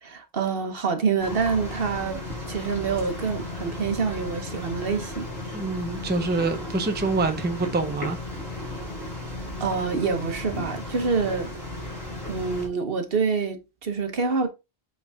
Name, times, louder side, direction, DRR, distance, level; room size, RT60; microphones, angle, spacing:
voice 1, 0.0-2.2 2.5-5.3 9.6-11.5 12.3-14.5, right 5 dB, 65° right, 1.3 m, -26 dB
sound 1, 1.2-12.7, left 2 dB, 20° left, 4.1 m, -35 dB
voice 2, 5.5-8.2, right 3 dB, 10° right, 0.7 m, -26 dB
8.0 x 3.8 x 3.5 m
omnidirectional pair, 1.0 m